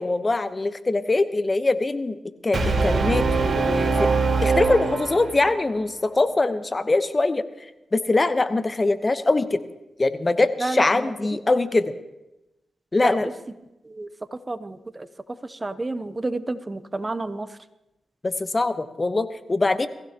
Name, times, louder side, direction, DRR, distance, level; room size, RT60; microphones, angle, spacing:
voice 1, 0.0-4.1 4.4-7.5 7.9-9.6 10.0-11.9 12.9-13.3 18.2-19.9, left 2 dB, 30° left, 12 dB, 0.9 m, -23 dB
Brass instrument, 2.5-5.6, right 4 dB, 50° right, 3.8 m, -22 dB
voice 2, 10.6-11.1 13.0-13.2 13.9-14.1 14.5-15.1 15.5-17.5, right 2 dB, 30° right, 13 dB, 0.7 m, -30 dB
22.5 x 15.5 x 2.9 m, 0.95 s
cardioid pair, 55°, 0 cm